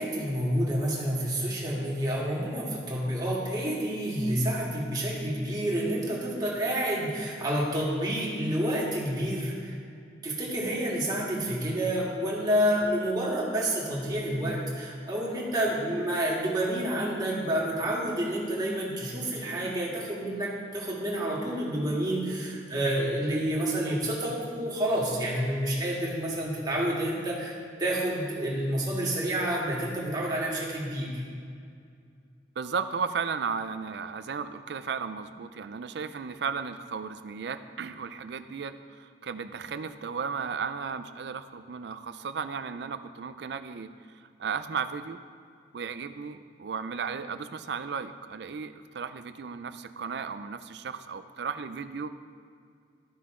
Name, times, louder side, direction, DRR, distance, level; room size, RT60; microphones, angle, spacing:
voice 1, 0.0-9.8 10.2-27.5 27.8-31.2, right 1 dB, 20° right, -5 dB, 1.8 m, -29 dB
voice 2, 32.6-43.9 44.4-45.2 45.7-52.1, right 6 dB, 65° right, 11 dB, 0.4 m, -35 dB
13.0 x 5.8 x 3.7 m, 2.2 s
head